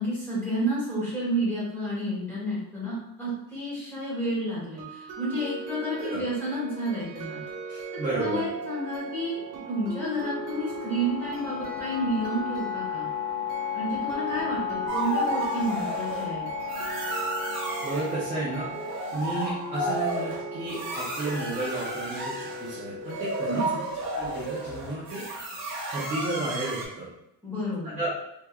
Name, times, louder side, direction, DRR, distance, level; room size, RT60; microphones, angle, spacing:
voice 1, 0.0-7.4 7.9-9.4 9.7-13.1 13.7-16.4 23.5-23.7 27.4-28.0, right 1 dB, 5° left, -8 dB, 1.3 m, -30 dB
sound 1, 4.8-24.0, right 4 dB, 60° right, 0.7 m, -39 dB
voice 2, 7.7-8.4 17.8-18.7 19.1-25.2 25.9-27.1 28.0-28.1, right 2 dB, 20° right, -7 dB, 0.5 m, -32 dB
sound 2, 8.9-22.3, left 7 dB, 40° left, 0.6 m, -36 dB
sound 3, 14.9-16.3 16.7-18.1 18.6-26.8, right 1 dB, 40° right, 1.4 m, -32 dB
3.5 x 3.0 x 2.3 m, 0.86 s
cardioid pair, 175°, 40 cm